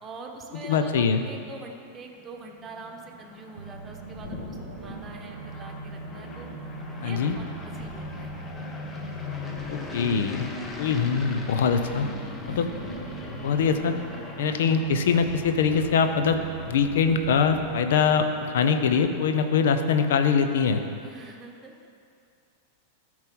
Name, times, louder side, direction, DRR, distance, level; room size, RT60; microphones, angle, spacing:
voice 1, 0.0-6.5 7.0-8.3 12.5-12.8 21.0-21.8, right 3 dB, 25° right, 2 dB, 1.1 m, -44 dB
voice 2, 0.5-1.3 7.0-7.4 9.7-10.5 10.8-12.1 12.5-12.7 13.4-13.9 14.4-20.8, left 6 dB, 60° left, 8 dB, 0.6 m, -23 dB
sound 1, 2.2-19.4, left 4 dB, 20° left, 0.9 m, -40 dB
sound 2, 3.6-18.2, right 5 dB, 65° right, 0.6 m, -42 dB
sound 3, 4.0-17.7, left 3 dB, 45° left, 1.4 m, -48 dB
13.5 x 4.8 x 5.4 m, 2.4 s
figure-of-eight pair, 90°, 0 cm